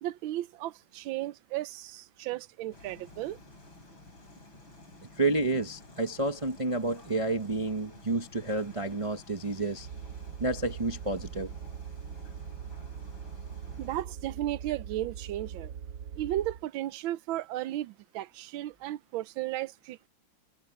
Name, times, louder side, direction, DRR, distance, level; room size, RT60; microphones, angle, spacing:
voice 1, 0.0-3.4 13.8-15.7 16.2-20.1, right 14 dB, 85° right, 1.4 m, -35 dB
sound 1, 2.7-14.0, left 2 dB, 80° left, 6.4 m, -52 dB
voice 2, 5.2-9.9 10.4-11.5, right 2 dB, 35° right, 0.5 m, -30 dB
sound 2, 9.8-16.7, right 8 dB, 60° right, 1.1 m, -42 dB
omnidirectional pair, 2.1 m